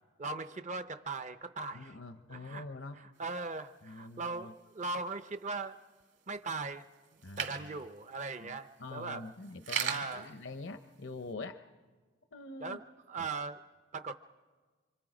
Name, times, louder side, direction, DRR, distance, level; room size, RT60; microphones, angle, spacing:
voice 1, 0.2-2.0 2.3-2.7 2.9-5.8 6.3-6.9 7.1-9.2 9.9-10.3 12.6-13.6 13.9-14.1, right 3 dB, 40° right, 10 dB, 0.6 m, -39 dB
voice 2, 1.7-3.0 3.8-4.5 7.2-7.4 8.4-11.6 12.3-12.8, left 3 dB, 75° left, 8 dB, 0.8 m, -45 dB
sound 1, 3.2-11.3, right 8 dB, 65° right, 2.6 m, -44 dB
27.0 x 26.0 x 5.0 m, 1.4 s
head